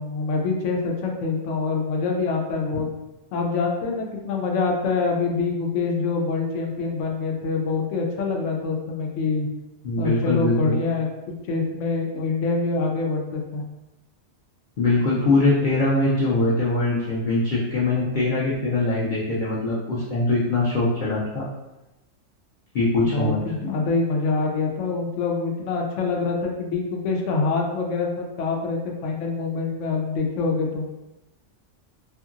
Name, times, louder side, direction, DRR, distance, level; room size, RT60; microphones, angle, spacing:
voice 1, 0.0-2.9 3.3-9.5 10.0-13.6 23.0-30.8, left 4 dB, 85° left, 1 dB, 0.9 m, -25 dB
voice 2, 9.8-10.7 14.8-21.5 22.7-23.4, left 2 dB, 55° left, -7 dB, 0.6 m, -22 dB
2.7 x 2.5 x 2.5 m, 0.99 s
omnidirectional pair, 1.2 m